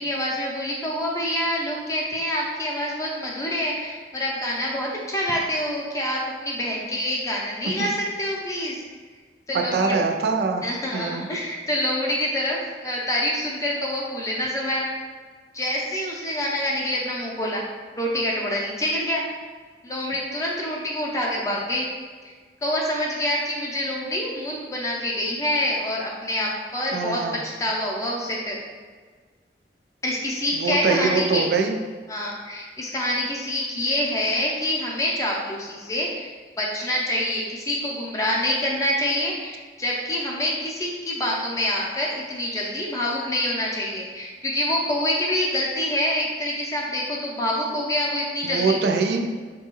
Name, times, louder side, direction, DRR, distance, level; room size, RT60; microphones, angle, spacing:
voice 1, 0.0-8.8 9.5-10.0 10.6-14.9 15.5-17.6 18.0-19.2 19.8-21.9 22.6-28.6 30.0-31.5 32.1-36.3 36.6-48.8, left 1 dB, 20° left, -3 dB, 0.5 m, -26 dB
voice 2, 9.5-10.6 10.9-11.2 26.9-27.4 30.6-31.7 48.4-49.3, right 4 dB, 65° right, 3 dB, 0.3 m, -23 dB
4.1 x 2.3 x 3.0 m, 1.5 s
head